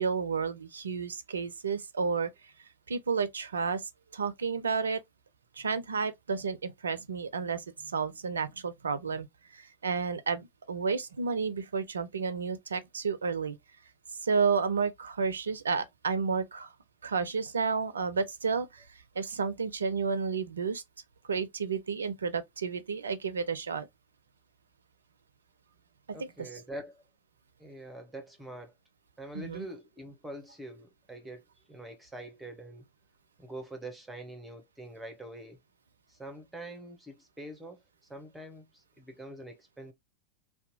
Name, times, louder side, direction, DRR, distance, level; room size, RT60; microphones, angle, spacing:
voice 1, 0.0-2.3 2.9-3.8 4.1-5.0 5.6-9.3 9.5-13.6 14.2-16.7 17.0-18.8 19.2-20.8 21.3-23.9 26.1-26.6 29.3-29.7, right 5 dB, 70° right, 0.4 m, -31 dB
voice 2, 26.1-27.0 27.6-28.7 29.2-31.4 31.7-32.9 33.4-35.6 36.1-37.8 38.1-39.9, right 1 dB, 5° right, 0.8 m, -44 dB
2.7 x 2.1 x 2.7 m
figure-of-eight pair, 90°, 0 cm